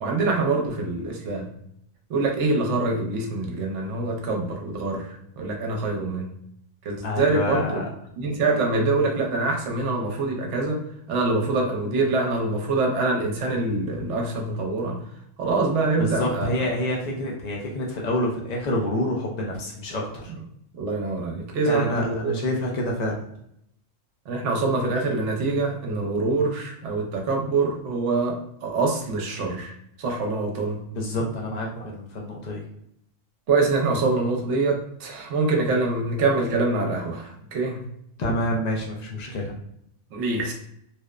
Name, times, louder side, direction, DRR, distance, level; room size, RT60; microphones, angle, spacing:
voice 1, 0.0-1.5 2.1-6.3 6.8-7.8 8.2-10.8 11.1-15.0 15.4-16.5 20.3-20.4 20.7-22.3 24.3-29.7 30.0-30.8 33.5-37.8 40.1-40.5, right 3 dB, 70° right, 0 dB, 0.9 m, -25 dB
voice 2, 7.0-7.8 16.0-20.3 21.6-23.2 30.9-32.6 38.2-39.6, left 1 dB, 80° left, -1 dB, 0.3 m, -27 dB
2.9 x 2.0 x 2.3 m, 0.73 s
omnidirectional pair, 1.3 m